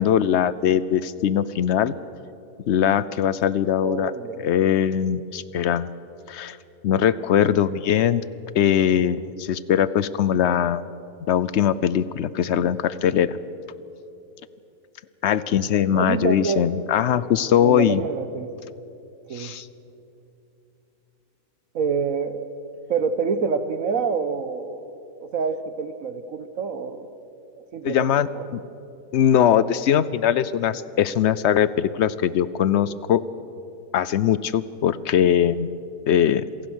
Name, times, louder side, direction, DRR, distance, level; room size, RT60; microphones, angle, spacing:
voice 1, 0.0-1.9 2.7-4.1 4.4-5.9 6.3-6.6 6.8-8.2 8.5-10.8 11.3-13.4 15.2-18.0 19.3-19.7 27.8-28.6 29.1-33.2 33.9-35.7 36.1-36.4, left 9 dB, 60° left, 17 dB, 0.7 m, -21 dB
voice 2, 3.8-4.5 15.9-16.7 17.6-18.5 19.3-19.6 21.7-22.5 22.9-24.9 25.3-27.2 27.6-28.1 28.3-28.6, right 5 dB, 65° right, 11 dB, 1.3 m, -27 dB
27.5 x 17.0 x 6.3 m, 2.8 s
omnidirectional pair, 1.6 m